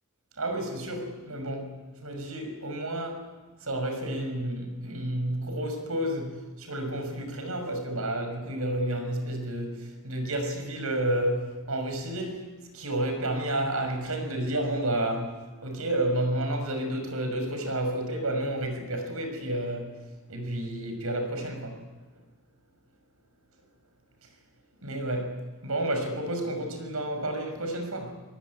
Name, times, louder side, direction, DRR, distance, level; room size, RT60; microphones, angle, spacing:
voice 1, 0.4-3.3 3.6-12.5 12.7-20.0 20.3-21.8 24.8-28.1, right 1 dB, 90° right, 6 dB, 6.0 m, -31 dB
23.5 x 20.0 x 9.7 m, 1.3 s
head